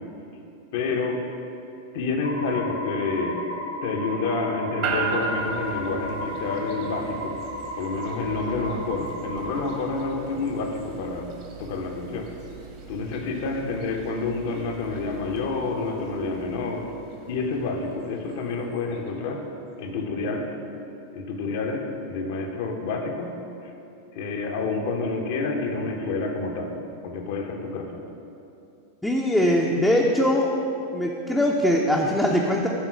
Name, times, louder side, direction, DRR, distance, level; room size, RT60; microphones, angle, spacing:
voice 1, 0.7-1.3 1.9-3.5 3.8-7.4 7.8-11.3 11.6-12.3 12.9-16.9 17.3-19.4 19.8-20.5 21.1-23.4 23.6-23.7 24.1-26.8 27.0-27.9, left 3 dB, 50° left, 3 dB, 0.8 m, -28 dB
sound 1, 2.2-9.8, equal, 85° right, 1.1 m, -35 dB
sound 2, 4.8-19.1, right 4 dB, 45° right, 1.1 m, -37 dB
voice 2, 29.0-30.5 30.9-32.7, left 1 dB, 5° left, -2 dB, 0.6 m, -21 dB
9.1 x 3.8 x 5.7 m, 2.7 s
figure-of-eight pair, 90°, 0 cm